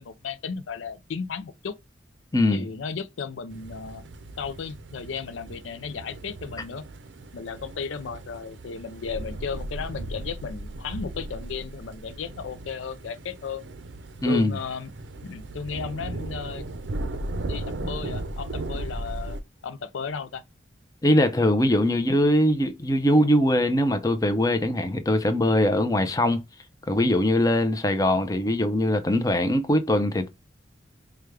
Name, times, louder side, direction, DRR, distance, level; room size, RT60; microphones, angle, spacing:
voice 1, 0.0-1.7 2.5-4.0 4.4-6.8 7.3-13.6 14.3-14.9 15.2-16.6 17.4-20.4, left 6 dB, 80° left, 0.4 m, -35 dB
voice 2, 2.3-2.7 14.2-14.6 21.0-26.4 26.9-30.3, left 1 dB, 20° left, 0.5 m, -22 dB
sound 1, 3.5-19.4, right 2 dB, 70° right, 0.6 m, -37 dB
4.9 x 2.3 x 3.2 m
head